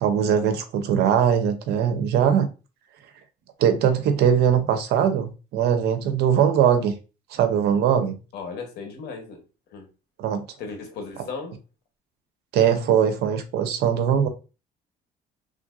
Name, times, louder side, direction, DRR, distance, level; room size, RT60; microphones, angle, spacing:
voice 1, 0.0-2.5 3.6-6.9 7.3-8.2 10.2-10.5 12.5-14.3, right 8 dB, 75° right, 0.6 m, -21 dB
voice 2, 8.3-9.4 9.7-9.9 10.6-11.6, left 4 dB, 75° left, 0.9 m, -36 dB
3.2 x 2.5 x 2.4 m
cardioid pair, 110°, 17 cm